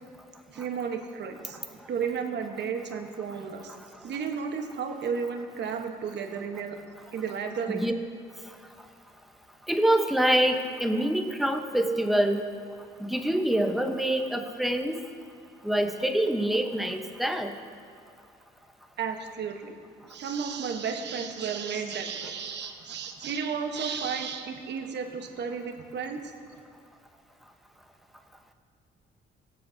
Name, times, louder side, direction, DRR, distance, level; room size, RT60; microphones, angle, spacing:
voice 1, 0.5-3.7 4.0-6.8 7.1-7.8 19.0-19.7 20.0-26.3, right 6 dB, 60° right, 5 dB, 1.0 m, -33 dB
voice 2, 9.7-12.5 13.0-15.0 15.6-17.5, right 1 dB, ahead, 5 dB, 0.8 m, -25 dB
20.5 x 7.6 x 2.7 m, 2.3 s
cardioid pair, 90°, 20 cm